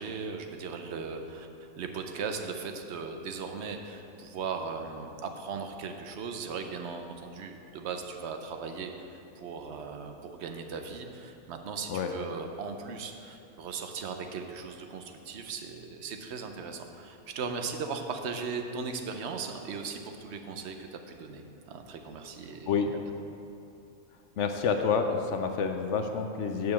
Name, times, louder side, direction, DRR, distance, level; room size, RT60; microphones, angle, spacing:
voice 1, 0.0-1.5 1.8-22.7, right 5 dB, 60° right, 5 dB, 0.9 m, -38 dB
voice 2, 24.4-26.7, left 6 dB, 65° left, 6 dB, 0.8 m, -28 dB
7.7 x 4.7 x 7.0 m, 2.7 s
omnidirectional pair, 1.5 m